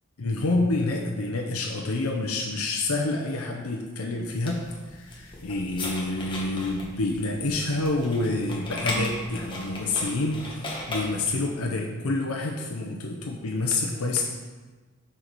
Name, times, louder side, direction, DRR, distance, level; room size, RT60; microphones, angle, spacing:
voice 1, 0.2-4.6 4.9-14.2, left 2 dB, 85° left, 0 dB, 0.8 m, -28 dB
sound 1, 4.3-11.5, left 1 dB, 25° left, 1.3 m, -36 dB
6.5 x 5.7 x 4.6 m, 1.3 s
head